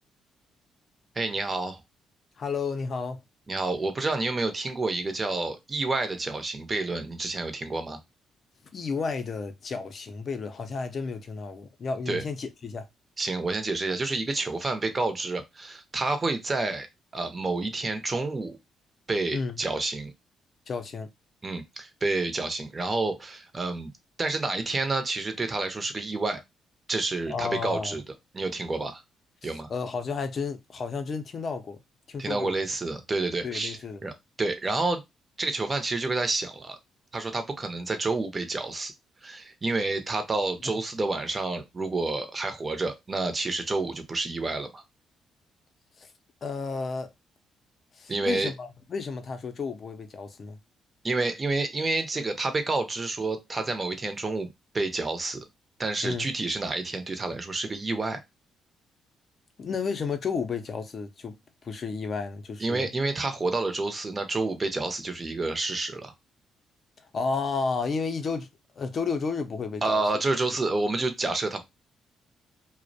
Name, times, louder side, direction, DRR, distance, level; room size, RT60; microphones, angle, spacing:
voice 1, 1.2-1.8 3.5-8.0 12.1-12.2 13.2-16.9 17.1-18.6 19.1-20.1 21.4-23.9 24.2-26.4 26.9-28.0 28.3-29.0 29.4-29.7 32.2-35.0 35.4-36.8 37.1-38.9 39.2-44.8 48.1-48.5 51.0-54.5 54.7-55.4 55.8-58.2 62.6-66.1 69.8-71.6, right 3 dB, 30° right, 0.5 m, -29 dB
voice 2, 2.4-3.2 8.7-12.9 19.3-19.6 20.7-21.1 27.3-28.0 29.4-31.8 32.1-32.5 33.4-34.0 46.0-46.1 46.4-47.1 48.0-50.6 56.0-56.3 59.6-61.4 61.6-62.9 67.1-68.5 68.8-70.0, left 5 dB, 50° left, 0.5 m, -32 dB
2.4 x 2.0 x 2.6 m
cardioid pair, 90°, 0 cm